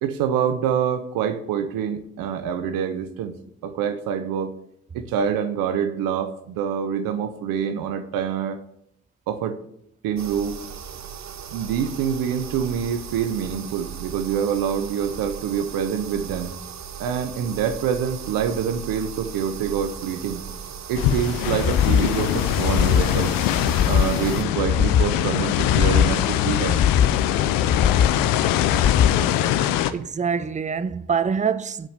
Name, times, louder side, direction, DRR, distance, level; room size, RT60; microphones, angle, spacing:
voice 1, 0.0-3.3 3.6-4.5 4.9-8.6 9.3-9.6 10.0-10.6 11.5-16.5 17.0-20.4 20.9-23.3 23.9-26.8, right 8 dB, 85° right, 0.7 m, -26 dB
sound 1, 10.2-24.4, right 8 dB, 55° right, 0.9 m, -37 dB
sound 2, 20.9-29.9, left 11 dB, 85° left, 0.5 m, -23 dB
sound 3, 21.6-22.1 22.5-23.1 23.5-24.1 24.5-25.1 25.5-26.1 26.5-27.1 27.6-28.2 28.6-29.2, left 8 dB, 40° left, 0.5 m, -21 dB
voice 2, 29.9-31.9, right 6 dB, 20° right, 0.6 m, -25 dB
7.6 x 5.0 x 7.2 m
hypercardioid pair, 40°, 33 cm